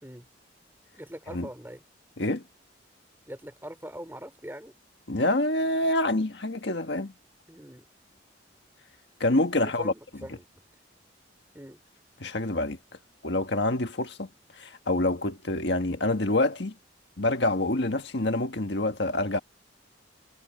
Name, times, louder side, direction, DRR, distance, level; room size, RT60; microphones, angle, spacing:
voice 1, 1.0-1.8 3.3-4.7 7.5-7.9 9.6-10.5 11.5-11.8, equal, 10° right, 4.1 m, -42 dB
voice 2, 5.1-7.1 9.2-9.9 12.2-12.8 13.2-14.3 14.6-16.7 17.2-19.4, left 2 dB, 65° left, 1.6 m, -26 dB
head